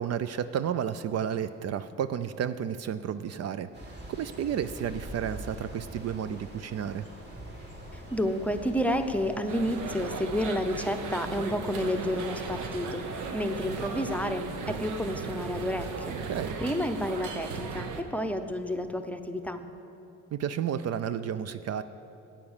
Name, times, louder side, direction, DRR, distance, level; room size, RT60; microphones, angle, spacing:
voice 1, 0.0-3.7 4.1-7.1 16.3-16.5 20.3-21.8, right 8 dB, 55° right, 13 dB, 0.5 m, -32 dB
sound 1, 3.7-14.2, right 1 dB, 35° right, 2.4 m, -44 dB
voice 2, 7.9-16.2 16.6-19.6, equal, 5° left, 7 dB, 0.7 m, -30 dB
sound 2, 9.5-18.0, right 4 dB, 90° right, 1.0 m, -37 dB
9.3 x 8.9 x 7.2 m, 3.0 s
cardioid pair, 90°, 30 cm